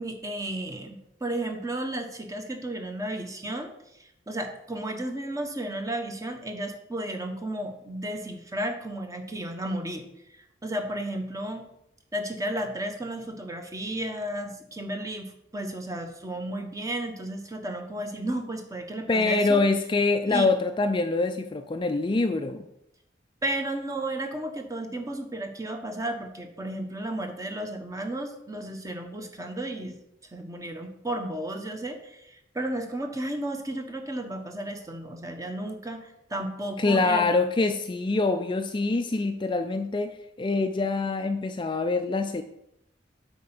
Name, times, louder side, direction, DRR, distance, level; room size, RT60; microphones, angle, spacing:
voice 1, 0.0-3.7 4.0-11.7 12.1-19.6 20.2-20.5 23.4-30.0 30.3-37.5, right 1 dB, 20° right, 5 dB, 1.0 m, -33 dB
voice 2, 19.1-22.7 36.8-42.4, left 3 dB, 25° left, 7 dB, 0.4 m, -25 dB
8.4 x 4.3 x 5.9 m, 0.81 s
head